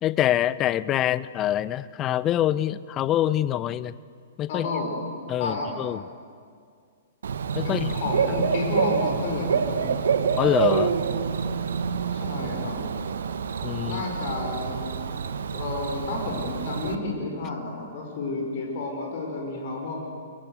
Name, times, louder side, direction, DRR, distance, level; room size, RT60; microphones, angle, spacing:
voice 1, 0.0-3.9 4.4-4.7 5.3-6.0 7.5-7.9 10.4-10.9 13.6-14.0, left 12 dB, 25° left, 17 dB, 0.6 m, -25 dB
voice 2, 4.5-4.9 5.4-5.7 7.6-10.0 12.1-12.8 13.9-14.8 15.5-20.0, left 3 dB, 45° left, 1 dB, 5.5 m, -31 dB
Bird / Cricket, 7.2-16.9, right 6 dB, 60° right, 1.2 m, -27 dB
29.0 x 24.0 x 6.6 m, 2.1 s
figure-of-eight pair, 110°, 0 cm